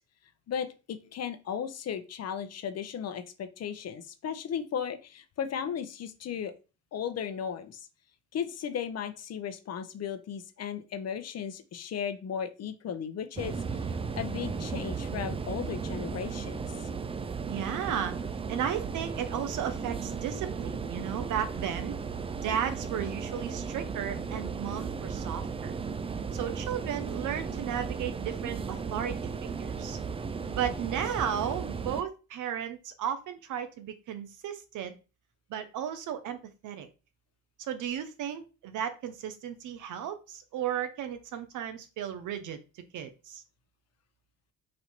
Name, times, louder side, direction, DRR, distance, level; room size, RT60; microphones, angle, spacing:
voice 1, 0.5-6.5 6.9-7.9 8.3-13.9 14.2-16.7, left 8 dB, 55° left, 10 dB, 0.8 m, -36 dB
sound 1, 13.4-32.0, right 5 dB, 20° right, 0.3 m, -35 dB
voice 2, 17.5-18.1 18.5-22.0 22.4-25.7 26.3-30.0 30.5-34.9 35.5-36.9 37.7-42.6 42.9-43.4, right 9 dB, 80° right, 9 dB, 0.8 m, -34 dB
4.2 x 2.7 x 4.4 m, 0.32 s
cardioid pair, 90°, 30 cm